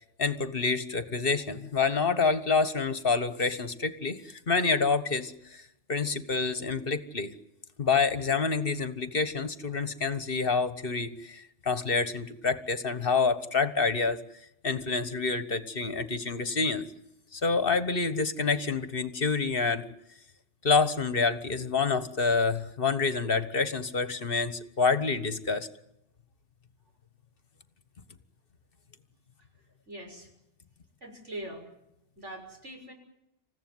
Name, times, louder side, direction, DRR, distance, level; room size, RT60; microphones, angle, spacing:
voice 1, 0.2-5.6 5.9-7.3 7.8-14.2 14.6-16.8 17.3-19.8 20.6-25.7, left 4 dB, 50° left, 12 dB, 1.6 m, -27 dB
voice 2, 29.9-30.3 31.0-31.7 32.2-32.9, right 1 dB, 80° right, 3 dB, 6.8 m, -42 dB
28.0 x 15.5 x 9.6 m, 0.85 s
omnidirectional pair, 1.2 m